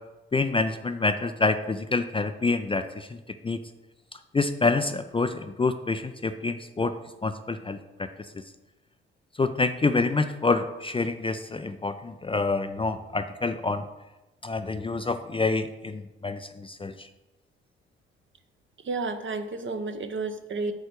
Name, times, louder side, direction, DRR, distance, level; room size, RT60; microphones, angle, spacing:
voice 1, 0.3-3.2 3.4-3.6 4.3-6.9 7.2-8.1 9.4-13.8 14.4-17.1, left 3 dB, 15° left, 8 dB, 0.5 m, -27 dB
voice 2, 18.8-20.7, right 3 dB, 40° right, 8 dB, 1.0 m, -31 dB
8.3 x 4.4 x 6.6 m, 1.0 s
figure-of-eight pair, 45°, 31 cm